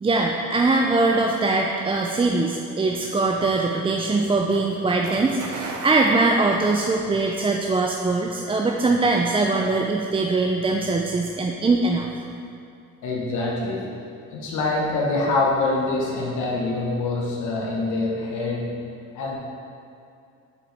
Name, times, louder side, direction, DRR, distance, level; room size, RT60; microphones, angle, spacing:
voice 1, 0.0-12.1, right 3 dB, 20° right, 0 dB, 0.4 m, -22 dB
sound 1, 2.8-7.2, right 3 dB, 75° right, 0.9 m, -38 dB
voice 2, 13.0-13.9 14.3-18.7 19.1-19.4, left 2 dB, 80° left, -3 dB, 1.1 m, -25 dB
6.9 x 5.0 x 3.3 m, 2.5 s
cardioid pair, 90°, 30 cm